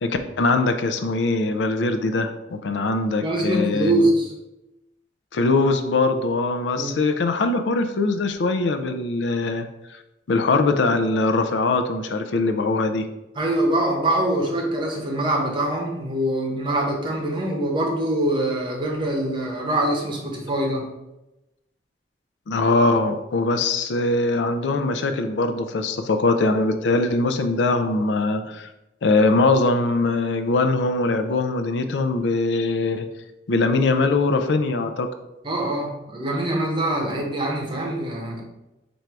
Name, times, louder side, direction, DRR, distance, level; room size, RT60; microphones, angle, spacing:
voice 1, 0.0-4.0 5.3-10.0 10.3-13.1 22.5-28.7 29.0-33.1 33.5-35.1, left 3 dB, 80° left, 8 dB, 0.4 m, -22 dB
voice 2, 3.2-4.3 6.8-6.9 13.3-20.9 35.4-38.4, right 1 dB, 30° right, -1 dB, 1.0 m, -24 dB
4.4 x 2.6 x 4.6 m, 0.96 s
head